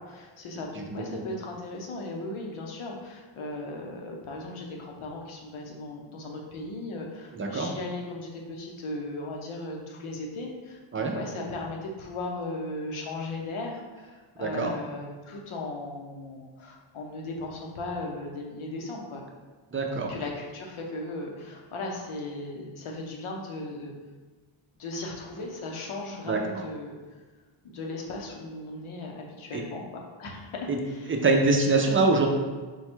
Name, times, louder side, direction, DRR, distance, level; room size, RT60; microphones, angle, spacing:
voice 1, 0.0-19.2 20.1-23.9 24.8-26.9 27.6-31.1, left 2 dB, 85° left, 0 dB, 0.9 m, -37 dB
voice 2, 0.9-1.2 7.3-7.7 10.9-11.1 14.4-14.7 19.7-20.1 26.3-26.6 29.5-29.6 30.7-30.8 31.1-32.3, right 3 dB, 30° right, 2 dB, 0.4 m, -24 dB
4.8 x 2.3 x 4.4 m, 1.3 s
wide cardioid pair, 170°, 48 cm